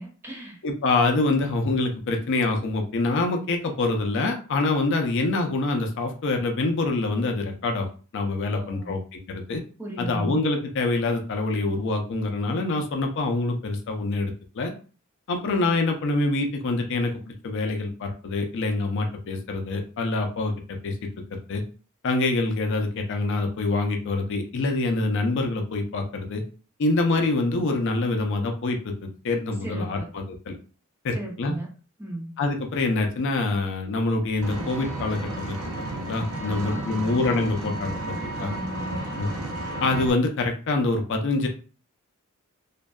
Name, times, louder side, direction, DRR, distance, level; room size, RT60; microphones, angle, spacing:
voice 1, 0.0-0.6 8.5-9.0 9.8-10.5 29.6-30.1 31.1-31.7 32.0-32.4 36.4-37.1 38.4-39.1, right 1 dB, 10° right, -2 dB, 0.6 m, -36 dB
voice 2, 0.6-7.9 8.1-9.6 10.0-14.7 15.3-17.1 17.4-21.0 21.3-21.6 22.0-26.4 26.8-30.6 31.0-31.5 32.4-35.6 35.9-38.5 38.9-39.3 39.8-41.5, left 2 dB, 60° left, 3 dB, 0.4 m, -25 dB
Vehicle, 34.4-40.1, right 2 dB, 70° right, 0.5 m, -33 dB
2.5 x 2.1 x 2.2 m, 0.37 s
head